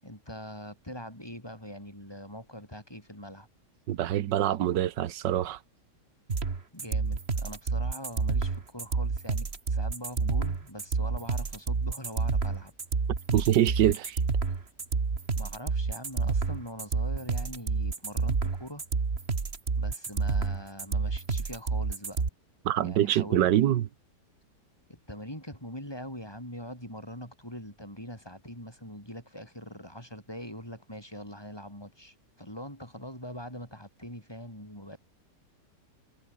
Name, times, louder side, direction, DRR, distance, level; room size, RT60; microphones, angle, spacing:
voice 1, 0.0-3.5 6.7-12.7 15.4-18.8 19.8-22.2 22.8-23.5 24.9-35.0, equal, 15° left, 7.6 m, -43 dB
voice 2, 3.9-5.6 13.3-14.2 22.6-23.9, right 12 dB, 80° right, 1.6 m, -25 dB
sound 1, 6.3-22.3, right 4 dB, 35° right, 2.0 m, -29 dB
omnidirectional pair, 1.9 m